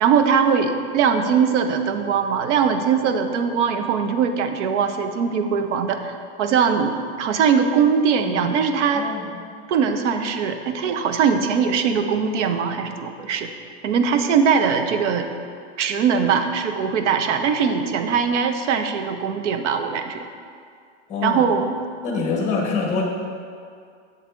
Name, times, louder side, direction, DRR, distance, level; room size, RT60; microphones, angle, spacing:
voice 1, 0.0-9.1 9.7-13.5 13.8-15.3 15.8-20.2 21.2-21.7, right 6 dB, 70° right, 7 dB, 0.7 m, -21 dB
voice 2, 8.9-9.3 21.1-21.5 22.0-23.0, left 4 dB, 20° left, 0 dB, 1.2 m, -25 dB
8.3 x 7.0 x 2.5 m, 2.2 s
supercardioid pair, 145°, 37 cm